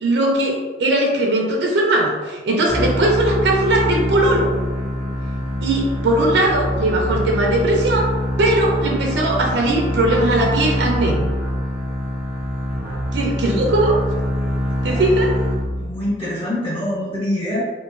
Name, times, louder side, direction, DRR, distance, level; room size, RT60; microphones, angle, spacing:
voice 1, 0.0-4.5 5.6-8.0 8.4-11.2 13.1-14.0 14.8-15.3, right 1 dB, 75° right, -1 dB, 0.4 m, -19 dB
sound 1, 2.7-16.1, equal, 10° right, 0.4 m, -24 dB
voice 2, 15.8-17.6, left 1 dB, 30° left, -8 dB, 0.9 m, -25 dB
2.9 x 2.1 x 2.4 m, 1.3 s
head